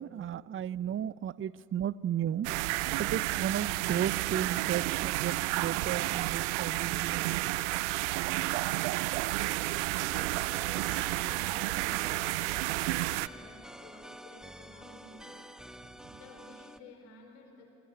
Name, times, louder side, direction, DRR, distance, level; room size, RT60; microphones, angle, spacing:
voice 1, 0.0-2.5 3.0-7.3, right 10 dB, 35° right, 20 dB, 0.6 m, -34 dB
sound 1, 2.4-13.3, right 20 dB, 80° right, 0.5 m, -31 dB
voice 2, 9.2-9.8 10.1-10.4 10.8-15.8 16.0-17.7, left 3 dB, 85° left, 1 dB, 4.8 m, -53 dB
sound 2, 9.8-16.8, right 1 dB, ahead, 1.1 m, -49 dB
27.0 x 17.5 x 9.7 m, 2.9 s
hypercardioid pair, 60°, 34 cm